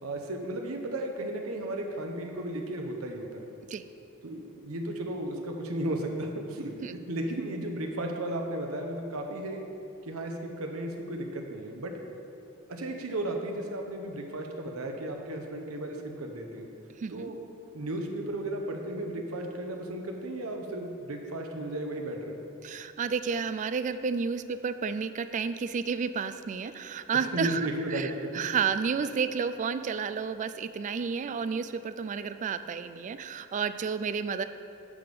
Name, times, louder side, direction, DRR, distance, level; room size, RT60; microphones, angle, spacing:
voice 1, 0.0-3.5 4.2-6.7 7.1-9.6 10.0-11.9 12.7-16.7 17.1-17.4 17.7-22.4 27.3-28.3, right 1 dB, 80° right, 3 dB, 0.9 m, -34 dB
voice 2, 17.0-17.3 22.6-27.6 27.9-34.4, right 6 dB, 35° right, 12 dB, 0.3 m, -31 dB
9.9 x 3.6 x 6.8 m, 2.7 s
head